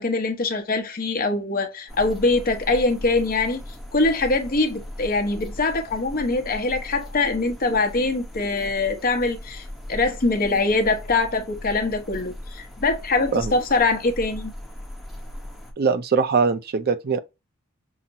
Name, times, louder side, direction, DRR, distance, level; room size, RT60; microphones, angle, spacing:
voice 1, 0.0-3.6 3.9-14.5, left 3 dB, 45° left, 0.9 m, -23 dB
sound 1, 1.9-15.7, left 1 dB, ahead, 0.8 m, -38 dB
voice 2, 15.8-17.2, right 5 dB, 50° right, 0.5 m, -21 dB
5.7 x 2.0 x 2.6 m
head